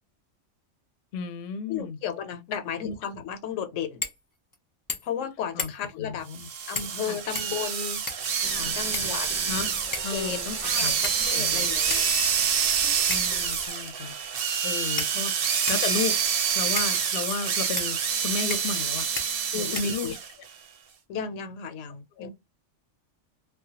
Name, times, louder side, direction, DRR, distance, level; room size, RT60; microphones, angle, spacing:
voice 1, 1.1-2.0 2.8-2.9 5.5-5.7 6.0-6.5 7.0-7.2 8.5-8.8 9.5-9.7 10.0-10.9 11.3-11.7 13.0-14.2 14.6-16.2 16.5-19.1 19.5-20.2 22.2-22.3, left 5 dB, 65° left, 0.6 m, -33 dB
voice 2, 1.7-4.0 5.0-6.3 6.7-8.0 8.7-9.3 10.1-12.0 12.8-12.9 19.5-20.1 21.1-22.3, left 7 dB, 90° left, 1.0 m, -34 dB
sound 1, 4.0-4.2 4.5-4.6 4.9-5.2 5.6-6.0 6.7-7.0 7.3-8.4 8.9-9.5 9.9-10.2 11.0-11.4 11.9-12.0 13.1-13.4 14.2-14.3 15.0-15.9 16.8-16.9 17.8-17.9 18.5-18.8 19.2-19.3 19.7-20.3, left 3 dB, 35° left, 0.3 m, -35 dB
sound 2, 6.3-20.3, right 7 dB, 60° right, 0.7 m, -27 dB
sound 3, 8.4-13.7, equal, 5° right, 0.6 m, -45 dB
2.3 x 2.1 x 2.7 m
omnidirectional pair, 1.2 m